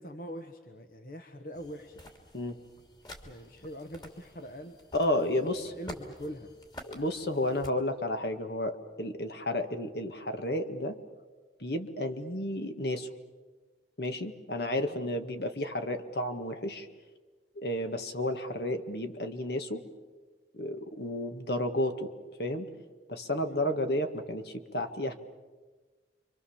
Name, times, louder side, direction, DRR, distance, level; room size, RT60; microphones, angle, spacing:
voice 1, 0.0-2.0 3.2-4.8 5.2-6.5 14.9-15.1 23.4-23.6, equal, 50° left, 6 dB, 1.3 m, -43 dB
sound 1, 1.5-7.7, left 1 dB, 25° left, 2.9 m, -49 dB
voice 2, 4.9-5.7 6.8-11.0 11.6-13.1 14.0-16.9 17.6-19.8 20.5-22.1 22.4-22.7 23.1-25.1, left 1 dB, 65° left, 7 dB, 1.9 m, -32 dB
29.0 x 24.5 x 7.3 m, 1.3 s
head